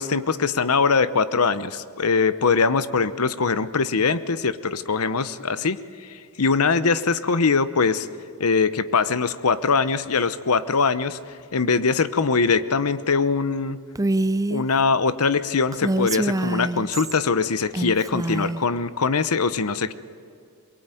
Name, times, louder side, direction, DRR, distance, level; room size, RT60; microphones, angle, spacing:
voice 1, 0.0-5.8 6.1-8.1 8.4-11.2 11.5-13.8 14.5-19.9, left 4 dB, 90° left, 15 dB, 0.9 m, -22 dB
Female speech woman speaking, 14.0-14.7 15.7-17.2 17.7-18.6, right 2 dB, 15° right, 0.5 m, -25 dB
23.0 x 23.0 x 9.2 m, 2.3 s
head